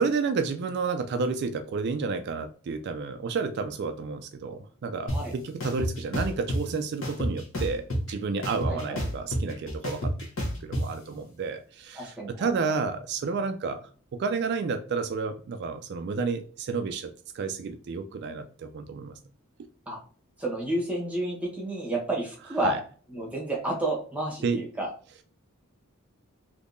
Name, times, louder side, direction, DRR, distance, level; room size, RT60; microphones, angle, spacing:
voice 1, 0.0-10.1 10.6-13.8 14.1-17.1 17.3-19.1 22.6-22.8 24.4-24.6, right 4 dB, 50° right, 8 dB, 0.3 m, -31 dB
sound 1, 5.1-5.2 5.6-6.6 7.0-8.1 8.4-10.8, equal, 65° left, 1.1 m, -29 dB
voice 2, 8.6-9.0 11.9-12.8 19.9-20.0 20.4-22.8 23.1-24.9, right 1 dB, 5° right, -3 dB, 1.0 m, -31 dB
3.5 x 2.8 x 2.5 m, 0.41 s
head